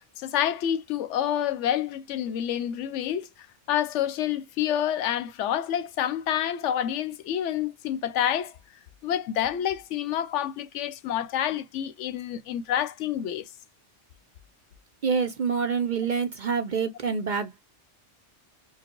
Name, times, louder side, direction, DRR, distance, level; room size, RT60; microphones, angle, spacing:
voice 1, 0.2-3.3 3.7-8.5 9.0-13.4, left 10 dB, 80° left, 0.9 m, -28 dB
voice 2, 15.0-17.6, right 5 dB, 55° right, 0.6 m, -27 dB
4.6 x 2.1 x 2.9 m
omnidirectional pair, 1.2 m